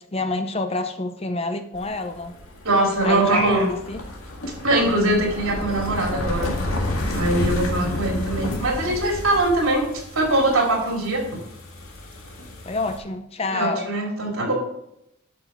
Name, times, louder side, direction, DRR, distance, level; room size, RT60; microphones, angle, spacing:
voice 1, 0.1-2.3 3.0-4.0 12.6-13.9, left 2 dB, 30° left, 8 dB, 0.6 m, -28 dB
sound 1, 1.7-13.0, left 1 dB, 80° left, 2.1 m, -31 dB
voice 2, 2.6-3.7 4.6-6.5 7.1-9.9 10.1-11.2 13.5-14.5, right 1 dB, 75° right, 0 dB, 3.1 m, -22 dB
11.0 x 6.2 x 4.6 m, 0.80 s
head